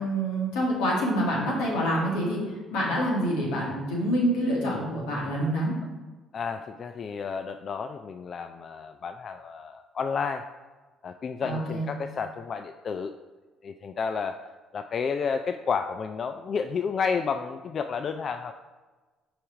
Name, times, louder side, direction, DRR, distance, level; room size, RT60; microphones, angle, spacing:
voice 1, 0.0-2.4 2.7-5.7 11.4-11.9, equal, 85° left, -3 dB, 1.9 m, -26 dB
voice 2, 6.3-10.5 11.0-13.1 13.6-14.4 14.7-18.5, left 5 dB, 50° left, 7 dB, 0.3 m, -31 dB
6.0 x 4.9 x 4.8 m, 1.3 s
supercardioid pair, 60°, 0 cm